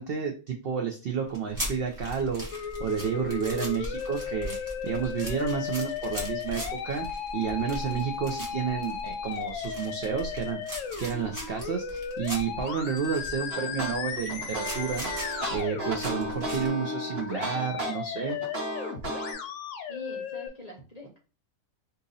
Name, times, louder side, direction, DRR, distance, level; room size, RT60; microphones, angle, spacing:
voice 1, 0.0-18.4, right 7 dB, 80° right, 2 dB, 0.5 m, -31 dB
sound 1, 1.3-16.7, equal, 15° right, 1.0 m, -40 dB
Musical instrument, 2.5-20.5, left 7 dB, 65° left, 0.8 m, -35 dB
sound 2, 13.5-19.3, right 2 dB, 50° right, 1.1 m, -34 dB
voice 2, 19.9-21.2, left 1 dB, 40° left, -1 dB, 0.6 m, -44 dB
2.8 x 2.6 x 3.8 m, 0.35 s
omnidirectional pair, 1.6 m